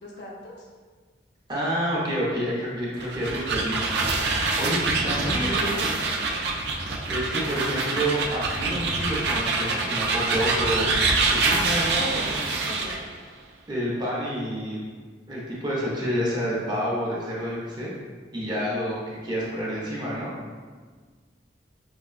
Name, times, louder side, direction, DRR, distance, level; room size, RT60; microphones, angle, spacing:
voice 1, 0.0-0.7 5.2-6.4 11.9-12.9, left 1 dB, 65° left, -3 dB, 0.7 m, -36 dB
voice 2, 1.5-3.8 4.6-6.0 7.1-11.0 11.3-12.4 13.7-14.8 15.3-17.9 18.3-20.3, equal, 25° right, -6 dB, 0.7 m, -29 dB
sound 1, 2.9-13.0, right 3 dB, 65° right, 0.4 m, -25 dB
4.6 x 2.2 x 2.4 m, 1.5 s
head